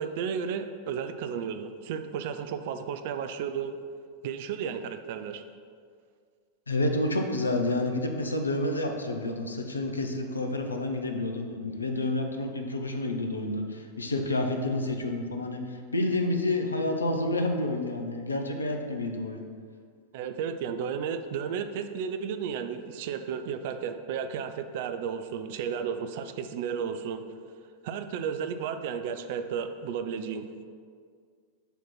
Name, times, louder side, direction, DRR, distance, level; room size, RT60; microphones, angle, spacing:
voice 1, 0.0-3.8 4.2-5.4 20.1-27.2 27.8-30.5, right 7 dB, 50° right, 8 dB, 0.4 m, -33 dB
voice 2, 6.7-19.4, left 2 dB, 75° left, 4 dB, 0.6 m, -29 dB
7.0 x 3.0 x 5.8 m, 2.1 s
figure-of-eight pair, 90°, 0 cm